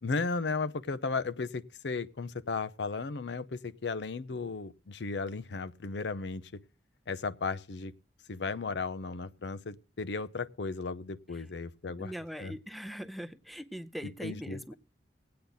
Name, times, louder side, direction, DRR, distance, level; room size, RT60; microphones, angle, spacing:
voice 1, 0.0-6.5 7.1-7.9 8.3-12.1 12.4-12.6 14.2-14.6, left 4 dB, 80° left, 0.6 m, -35 dB
voice 2, 11.8-14.7, equal, ahead, 0.5 m, -41 dB
20.0 x 8.6 x 3.9 m
head